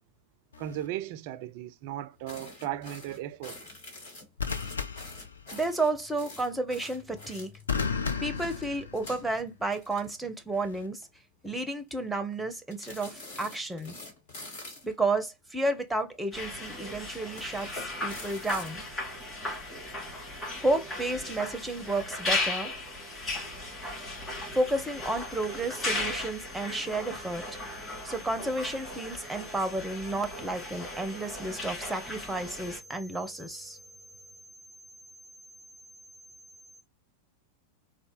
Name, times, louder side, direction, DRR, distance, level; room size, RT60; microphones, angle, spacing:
sound 1, 0.5-0.9 4.4-5.9 7.7-9.3 10.5-10.9, left 5 dB, 70° left, 0.5 m, -34 dB
voice 1, 0.6-3.8, right 12 dB, 45° right, 0.3 m, -37 dB
sound 2, 2.3-7.8 8.2-10.5 10.8-11.0 11.4-11.9 12.7-14.9 15.7-16.5 17.2-18.7, left 2 dB, 55° left, 1.5 m, -46 dB
voice 2, 5.5-7.5 8.2-11.0 11.4-14.0 14.8-18.8 20.6-22.7 24.5-27.4 28.0-33.8, right 2 dB, 5° right, 0.6 m, -31 dB
sound 3, 16.3-32.8, left 2 dB, 20° left, 2.5 m, -36 dB
4.0 x 2.1 x 3.0 m
figure-of-eight pair, 90°, 0 cm